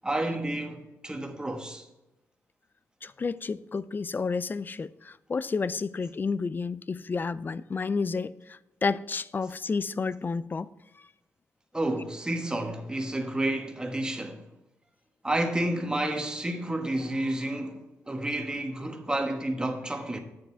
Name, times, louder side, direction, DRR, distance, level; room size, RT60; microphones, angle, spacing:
voice 1, 0.0-1.9 11.7-14.4 15.2-20.2, right 1 dB, 15° right, 1.3 m, -30 dB
voice 2, 3.0-10.7, left 4 dB, 35° left, 0.4 m, -31 dB
9.1 x 7.0 x 4.4 m
cardioid pair, 85°, 6 cm